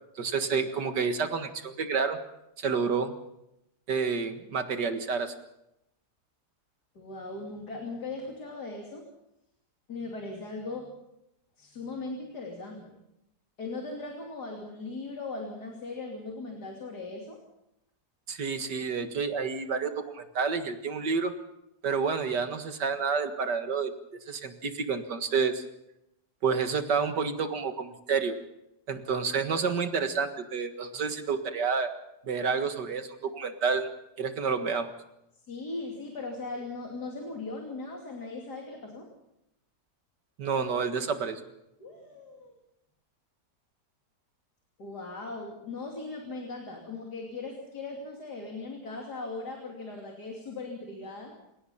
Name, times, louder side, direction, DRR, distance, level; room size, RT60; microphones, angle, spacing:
voice 1, 0.2-2.2 2.6-3.1 3.9-5.3 18.3-21.3 21.8-23.9 24.3-25.6 26.4-28.4 28.9-31.9 32.2-33.9 34.2-34.9 40.4-41.4, right 5 dB, 85° right, 7 dB, 2.3 m, -29 dB
voice 2, 7.0-9.1 9.9-10.9 11.6-13.0 13.6-17.4 35.5-39.1 41.8-42.5 44.8-51.3, left 3 dB, 75° left, 0 dB, 3.5 m, -39 dB
28.0 x 17.5 x 5.7 m, 0.85 s
omnidirectional pair, 1.8 m